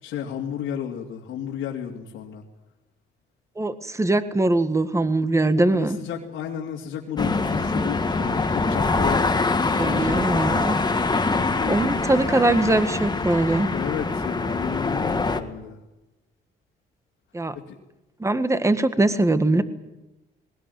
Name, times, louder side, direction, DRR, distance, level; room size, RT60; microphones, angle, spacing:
voice 1, 0.0-2.4 5.5-9.3 9.6-10.9 11.5-11.8 13.6-15.8 19.5-19.6, left 8 dB, 90° left, -2 dB, 2.9 m, -32 dB
voice 2, 3.6-6.0 9.6-10.8 11.7-13.7 17.3-17.6 18.2-19.6, right 2 dB, 15° right, 11 dB, 1.7 m, -22 dB
sound 1, 7.2-15.4, left 3 dB, 20° left, 1.8 m, -24 dB
20.0 x 19.0 x 9.5 m, 0.99 s
cardioid pair, 90°, 20 cm